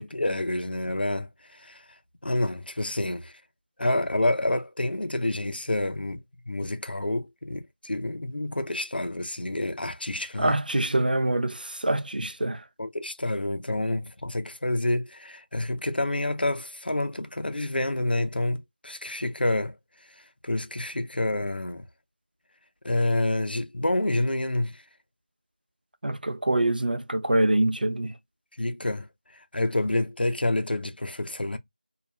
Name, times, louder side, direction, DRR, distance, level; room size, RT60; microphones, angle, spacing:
voice 1, 0.0-1.8 2.2-3.3 3.8-6.2 6.5-10.6 12.8-19.8 20.4-21.8 22.8-24.8 28.6-29.1 29.5-31.6, left 1 dB, 85° left, 0.5 m, -28 dB
voice 2, 10.4-12.6 26.0-28.2, right 1 dB, 70° right, 0.4 m, -25 dB
2.3 x 2.0 x 3.2 m
figure-of-eight pair, 175°, 5 cm